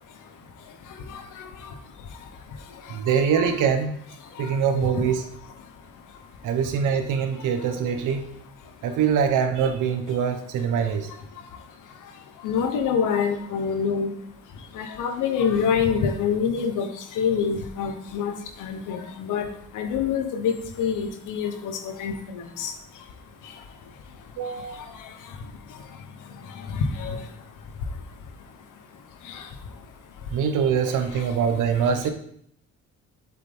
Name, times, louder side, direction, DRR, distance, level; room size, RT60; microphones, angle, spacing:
voice 1, 2.9-3.9 4.4-5.2 6.4-8.3 8.8-11.1 24.4-24.8 30.3-32.1, right 7 dB, 85° right, 7 dB, 1.1 m, -23 dB
voice 2, 12.4-14.1 14.8-16.9 17.2-19.5 19.7-22.7 26.7-27.2 29.3-29.4, left 6 dB, 90° left, 7 dB, 1.0 m, -26 dB
7.7 x 7.3 x 3.6 m, 0.68 s
cardioid pair, 90°, 30 cm